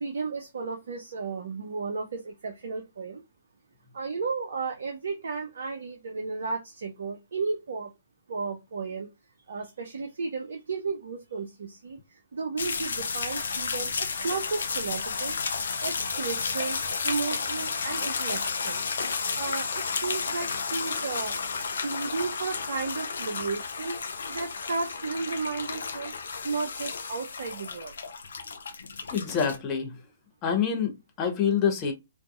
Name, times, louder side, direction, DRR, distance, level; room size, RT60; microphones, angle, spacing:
voice 1, 0.0-3.2 3.9-7.9 8.3-9.1 9.5-15.4 15.8-18.8 19.2-21.4 21.8-24.0 24.3-26.1 26.4-27.9, right 4 dB, 60° right, 0.4 m, -34 dB
sound 1, 12.6-29.6, left 5 dB, 65° left, 0.3 m, -32 dB
voice 2, 29.1-30.0 30.4-31.9, left 7 dB, 25° left, 0.6 m, -26 dB
2.6 x 2.2 x 2.3 m
figure-of-eight pair, 125°, 0 cm